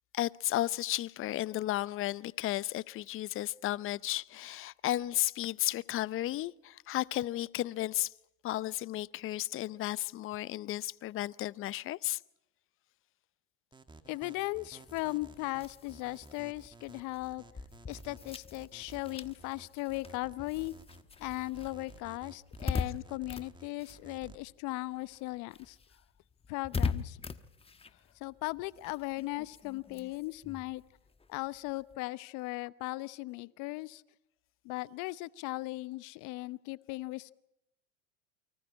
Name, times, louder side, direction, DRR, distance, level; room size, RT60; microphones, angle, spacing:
voice 1, 0.1-8.1 8.4-12.2, left 15 dB, 35° left, 0.7 m, -33 dB
sound 1, 13.7-24.4, right 3 dB, 10° right, 2.1 m, -53 dB
voice 2, 14.1-17.4 17.9-20.7 21.2-25.8 26.5-27.2 28.2-30.8 31.3-34.0 34.6-37.3, left 21 dB, 50° left, 1.0 m, -38 dB
sound 2, 14.8-24.7 25.0-31.9, left 5 dB, 15° left, 1.2 m, -41 dB
29.0 x 24.5 x 4.3 m
hypercardioid pair, 100°, 38 cm